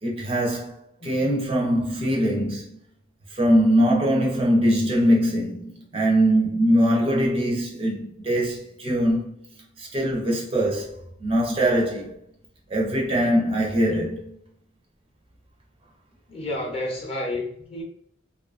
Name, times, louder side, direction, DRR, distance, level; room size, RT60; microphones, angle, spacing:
voice 1, 0.0-2.8 3.3-9.4 9.8-12.2 12.7-14.4, equal, 25° right, 0.5 m, -22 dB
voice 2, 1.0-1.3 16.3-17.8, left 1 dB, 30° left, 0.6 m, -31 dB
2.6 x 2.4 x 2.3 m
head